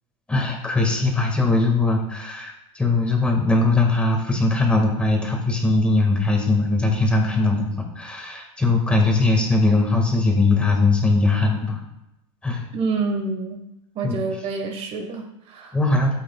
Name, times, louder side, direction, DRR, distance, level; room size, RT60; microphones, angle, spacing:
voice 1, 0.3-11.8 12.4-12.6 14.0-14.2 15.7-16.1, left 2 dB, 5° left, 1 dB, 1.7 m, -20 dB
voice 2, 12.7-13.6 13.9-15.8, right 4 dB, 35° right, 4 dB, 1.3 m, -27 dB
12.5 x 8.0 x 2.3 m, 0.88 s
supercardioid pair, 145°, 16 cm